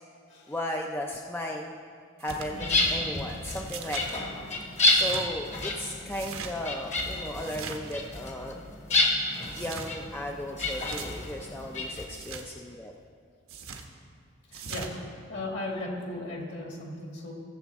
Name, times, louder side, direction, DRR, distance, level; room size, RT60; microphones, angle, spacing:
voice 1, 0.5-1.8 2.2-2.6 2.9-4.2 4.9-8.6 9.6-12.9, left 1 dB, 10° left, 1 dB, 0.4 m, -35 dB
sound 1, 2.2-2.5 3.7-4.1 4.8-5.3 6.1-6.5 7.4-8.0 9.5-9.9 10.7-11.1 12.1-12.5 13.5-13.9 14.5-14.9, right 5 dB, 80° right, 1.0 m, -40 dB
sound 2, 2.3-12.1, left 2 dB, 35° left, 1.2 m, -30 dB
voice 2, 2.5-3.1 14.5-15.0 15.3-17.3, left 1 dB, 55° left, -2 dB, 2.4 m, -37 dB
17.5 x 7.2 x 3.5 m, 2.2 s
head